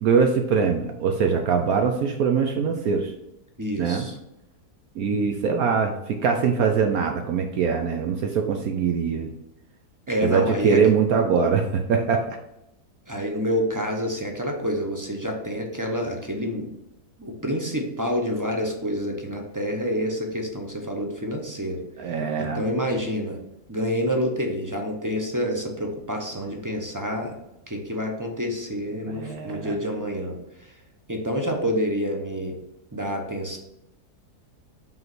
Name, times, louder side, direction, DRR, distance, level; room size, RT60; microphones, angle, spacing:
voice 1, 0.0-3.1 3.8-4.0 5.0-9.3 10.2-12.4 22.0-22.6 29.1-29.8, right 6 dB, 70° right, 4 dB, 1.1 m, -22 dB
voice 2, 3.6-4.2 10.1-10.8 13.1-16.7 17.2-21.8 22.4-23.4 23.7-27.3 27.7-30.4 31.1-32.6 32.9-33.6, equal, 20° right, 2 dB, 0.6 m, -28 dB
5.5 x 3.9 x 6.0 m, 0.86 s
omnidirectional pair, 1.7 m